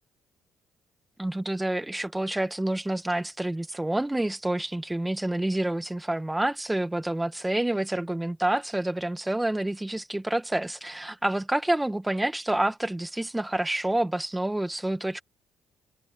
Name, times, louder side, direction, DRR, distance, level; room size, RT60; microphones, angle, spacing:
voice 1, 1.2-15.2, right 1 dB, 10° right, 1.9 m, -28 dB
cardioid pair, 85°, 0 cm